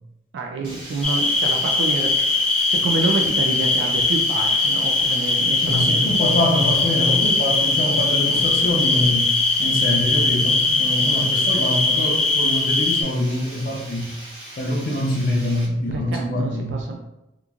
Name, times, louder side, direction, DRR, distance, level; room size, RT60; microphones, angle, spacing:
voice 1, 0.3-6.1 15.9-17.0, right 3 dB, 90° right, 1 dB, 0.3 m, -28 dB
Water, 0.6-15.7, right 1 dB, 55° right, 1.4 m, -39 dB
sound 1, 1.0-13.0, left 3 dB, 5° left, 0.5 m, -20 dB
voice 2, 5.6-9.3 9.6-14.1 14.6-16.8, left 1 dB, 50° left, 0 dB, 0.6 m, -24 dB
2.9 x 2.4 x 2.3 m, 0.92 s
head